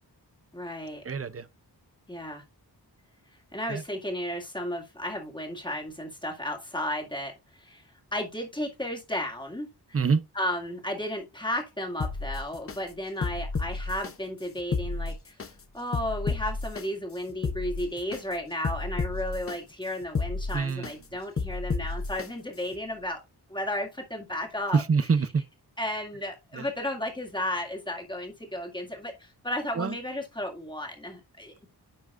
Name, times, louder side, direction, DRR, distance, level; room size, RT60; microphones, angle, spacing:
voice 1, 0.5-1.0 2.1-2.4 3.5-9.7 10.3-15.5 15.7-23.2 23.5-24.8 25.8-31.7, left 1 dB, 10° left, 2.0 m, -34 dB
voice 2, 1.0-1.5 3.7-3.8 9.9-10.2 20.5-20.9 24.7-25.4 26.5-26.7 29.8-30.0, right 5 dB, 35° right, 0.6 m, -25 dB
sound 1, 12.0-12.8 13.2-14.1 14.6-15.5 15.9-16.8 17.3-18.2 18.6-19.6 20.0-20.9 21.4-22.3 22.7-22.8, left 4 dB, 35° left, 0.7 m, -31 dB
10.0 x 5.9 x 2.5 m
wide cardioid pair, 135°, 39 cm